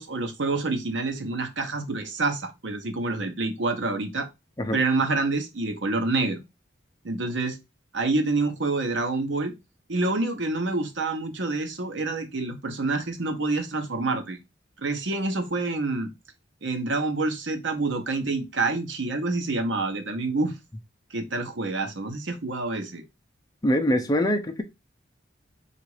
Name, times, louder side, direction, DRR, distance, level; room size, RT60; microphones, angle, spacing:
voice 1, 0.0-4.3 4.7-6.4 7.0-7.6 7.9-9.5 9.9-14.4 14.8-16.1 16.6-20.5 21.1-23.0, right 3 dB, 75° right, 0.9 m, -27 dB
voice 2, 23.6-24.6, equal, 20° left, 0.5 m, -23 dB
4.0 x 2.5 x 4.7 m
head